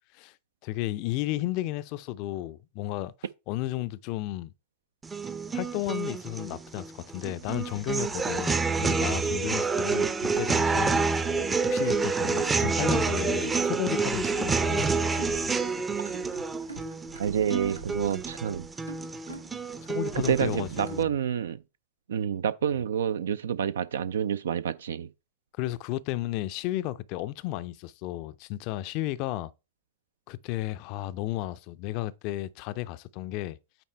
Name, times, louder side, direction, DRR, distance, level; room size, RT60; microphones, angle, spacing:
voice 1, 0.6-3.1 3.5-4.5 5.5-11.0 11.7-14.9 19.9-21.1 25.6-29.5 30.3-33.6, left 15 dB, 45° left, 0.5 m, -33 dB
sound 1, 5.0-21.0, right 4 dB, 15° right, 0.6 m, -28 dB
sound 2, 7.4-21.0, right 2 dB, 90° right, 1.5 m, -45 dB
voice 2, 17.2-18.7 20.1-21.6 22.1-25.1, right 8 dB, 65° right, 0.4 m, -28 dB
8.8 x 4.2 x 3.3 m
figure-of-eight pair, 90°, 0 cm